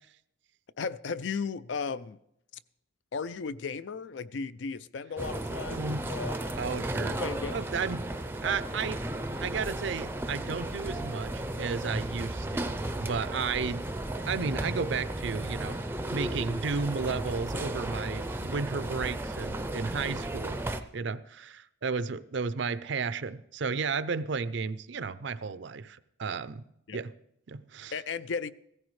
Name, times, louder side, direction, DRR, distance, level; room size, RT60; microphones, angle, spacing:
voice 1, 0.8-2.2 3.1-6.6 7.2-7.6 26.9-27.0 27.9-28.5, left 5 dB, 65° left, 0.4 m, -35 dB
sound 1, 5.2-20.8, right 1 dB, 10° right, 0.5 m, -34 dB
sound 2, 5.6-13.5 13.8-17.0, equal, 85° left, 1.3 m, -58 dB
voice 2, 5.7-6.0 6.6-7.2 7.5-8.0 8.4-9.0 9.4-13.8 14.3-15.8 16.1-20.6 20.9-26.6 26.9-27.1 27.5-27.9, right 5 dB, 60° right, 0.5 m, -33 dB
16.0 x 14.5 x 3.2 m
head